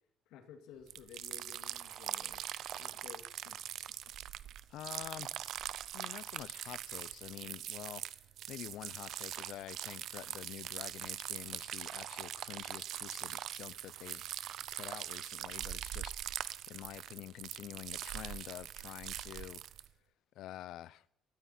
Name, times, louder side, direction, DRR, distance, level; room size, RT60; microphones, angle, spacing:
voice 1, 0.3-2.4 2.8-3.6 4.0-4.1, left 8 dB, 85° left, 2.3 m, -54 dB
sound 1, 0.9-19.9, right 11 dB, 55° right, 0.5 m, -42 dB
voice 2, 4.7-5.4 5.9-8.2 8.5-14.2 14.7-19.6 20.4-21.0, left 13 dB, 60° left, 0.5 m, -48 dB
18.5 x 13.0 x 4.4 m
cardioid pair, 165°, 0 cm